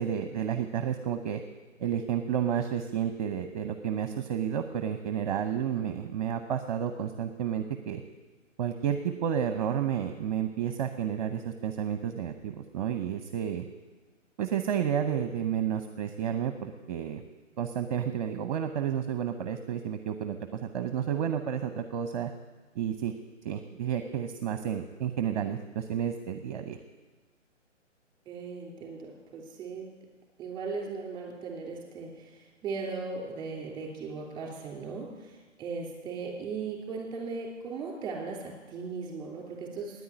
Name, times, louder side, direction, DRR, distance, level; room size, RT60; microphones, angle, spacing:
voice 1, 0.0-1.4 1.8-8.0 8.6-13.6 14.4-17.2 17.6-22.3 22.8-23.1 23.4-26.8, right 9 dB, 35° right, 8 dB, 0.8 m, -31 dB
voice 2, 28.3-29.9 30.4-40.0, right 4 dB, 10° right, 0 dB, 3.1 m, -38 dB
9.6 x 9.6 x 9.5 m, 1.3 s
figure-of-eight pair, 135°, 38 cm